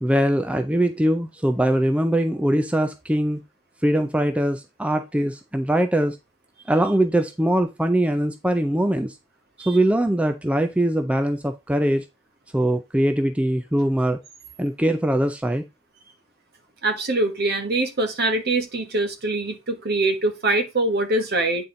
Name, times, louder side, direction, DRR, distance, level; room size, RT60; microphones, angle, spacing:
voice 1, 0.0-3.4 3.8-6.2 6.7-9.2 9.7-12.1 12.5-14.2 14.6-15.6, right 1 dB, 5° right, 0.4 m, -22 dB
voice 2, 16.8-21.6, right 2 dB, 50° right, 1.3 m, -23 dB
8.8 x 4.2 x 3.8 m
head